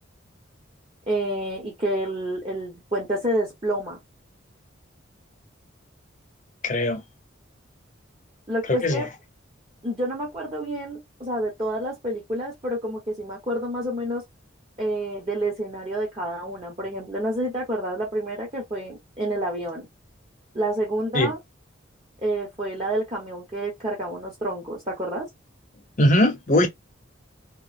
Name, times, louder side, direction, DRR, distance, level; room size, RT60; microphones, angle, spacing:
voice 1, 1.1-4.0 8.5-9.1 9.8-14.2 14.8-19.9 20.5-21.4 22.2-25.3, right 1 dB, 30° right, 0.7 m, -28 dB
voice 2, 6.6-7.0 8.8-9.0 21.1-21.3 26.0-26.7, left 1 dB, 40° left, 0.6 m, -20 dB
2.9 x 2.3 x 2.4 m
head